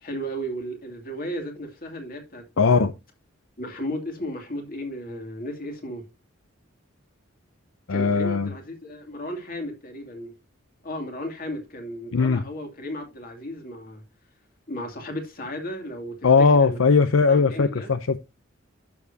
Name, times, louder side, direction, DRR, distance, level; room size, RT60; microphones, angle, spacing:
voice 1, 0.0-2.9 3.6-6.0 7.9-10.3 10.8-14.0 14.7-16.2 16.6-17.9, equal, 45° left, 2.6 m, -34 dB
voice 2, 2.6-2.9 7.9-8.5 12.1-12.4 16.2-18.2, left 4 dB, 75° left, 0.6 m, -19 dB
11.0 x 7.1 x 2.8 m
head